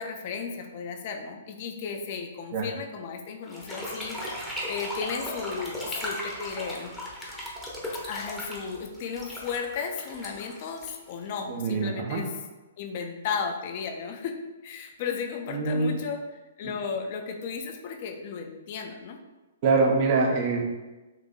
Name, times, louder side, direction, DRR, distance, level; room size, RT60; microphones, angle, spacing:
voice 1, 0.0-7.0 8.0-12.3 12.8-14.3 14.6-16.2 16.6-19.2, left 6 dB, 45° left, 4 dB, 0.4 m, -34 dB
sound 1, 3.5-11.5, left 1 dB, ahead, 0.7 m, -37 dB
voice 2, 11.5-12.2 15.5-15.9 16.6-16.7 19.6-20.6, right 4 dB, 40° right, 1 dB, 0.6 m, -24 dB
3.8 x 2.7 x 2.3 m, 1.1 s
figure-of-eight pair, 120°, 0 cm